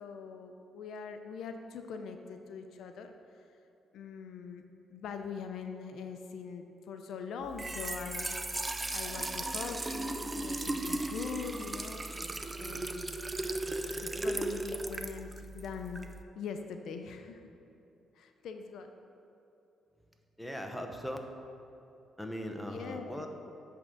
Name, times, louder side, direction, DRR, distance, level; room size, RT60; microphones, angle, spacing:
voice 1, 0.0-3.5 3.9-12.1 12.6-13.2 14.0-16.1 16.3-17.5 18.1-18.9 22.7-23.3, left 6 dB, 75° left, 6 dB, 0.5 m, -43 dB
Trickle dribble / Fill (with liquid), 7.4-16.2, right 2 dB, 20° right, 0.4 m, -36 dB
voice 2, 20.4-21.2 22.2-23.3, equal, ahead, 3 dB, 0.8 m, -39 dB
8.2 x 3.7 x 6.4 m, 2.9 s
cardioid pair, 90°, 0 cm